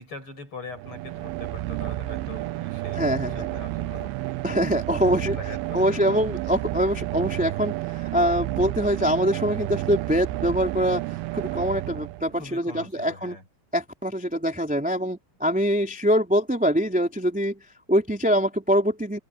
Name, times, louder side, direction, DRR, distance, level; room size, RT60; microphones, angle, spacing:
voice 1, 0.0-4.6 4.9-6.2 12.3-13.4 14.9-15.0, left 3 dB, 30° left, 7.2 m, -42 dB
sound 1, 0.7-12.6, right 17 dB, 80° right, 2.2 m, -31 dB
voice 2, 2.9-3.5 4.4-5.4 5.7-13.4 13.7-19.2, equal, ahead, 2.8 m, -24 dB
omnidirectional pair, 5.2 m